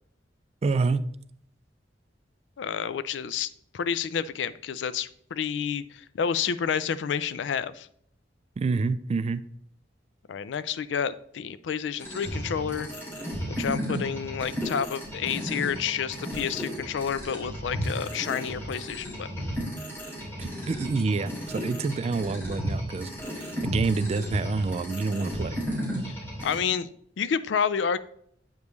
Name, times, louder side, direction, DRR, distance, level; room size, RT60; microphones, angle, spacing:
voice 1, 0.6-1.1 8.6-9.4 20.4-25.6, right 4 dB, 35° right, 14 dB, 0.3 m, -28 dB
voice 2, 2.6-3.5 3.7-7.9 10.3-12.9 13.5-19.5 26.0-26.9 27.2-28.0, left 7 dB, 80° left, 16 dB, 0.4 m, -29 dB
sound 1, 12.0-26.5, equal, 15° left, 2.8 m, -34 dB
8.0 x 5.2 x 3.1 m, 0.67 s
head